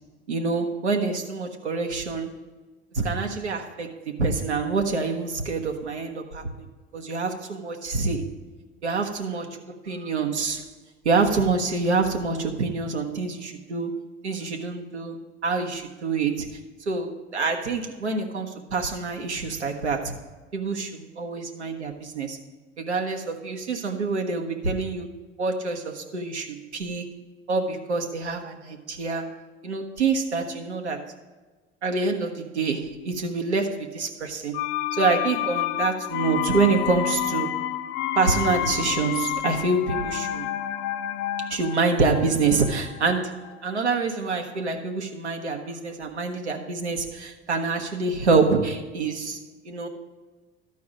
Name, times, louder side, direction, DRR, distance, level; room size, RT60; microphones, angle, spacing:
voice 1, 0.3-2.3 2.9-6.5 6.9-8.2 8.8-9.6 9.9-10.6 11.0-14.0 14.2-15.2 15.4-16.5 16.9-20.1 20.5-22.4 22.8-25.1 25.4-27.0 27.5-29.3 29.6-31.1 31.8-34.6 34.9-37.6 38.2-40.5 41.5-49.4 49.6-49.9, right 4 dB, 85° right, 3 dB, 1.1 m, -26 dB
sound 1, 34.5-44.3 44.6-44.7, left 12 dB, 60° left, 0.6 m, -30 dB
13.0 x 4.7 x 6.0 m, 1.3 s
figure-of-eight pair, 65°, 33 cm